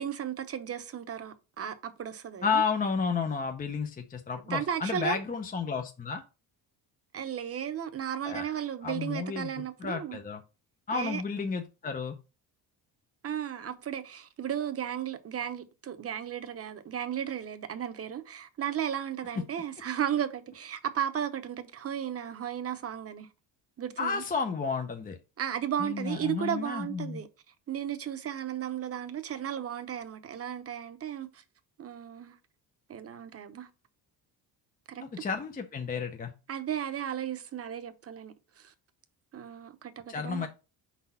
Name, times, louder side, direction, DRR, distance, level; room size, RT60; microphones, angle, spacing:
voice 1, 0.0-2.6 4.5-5.2 7.1-10.2 10.9-11.2 13.2-23.3 23.8-24.2 25.4-27.3 27.7-31.4 31.8-32.4 32.9-33.7 34.9-35.0 36.5-38.7 39.3-40.5, right 9 dB, 35° right, 0.9 m, -35 dB
voice 2, 2.4-6.2 8.2-8.5 8.8-9.5 9.8-10.4 10.9-12.2 24.0-25.2 25.8-27.2 35.0-36.3 40.1-40.5, left 5 dB, 20° left, 0.6 m, -32 dB
5.3 x 4.1 x 5.5 m
cardioid pair, 125°, 40 cm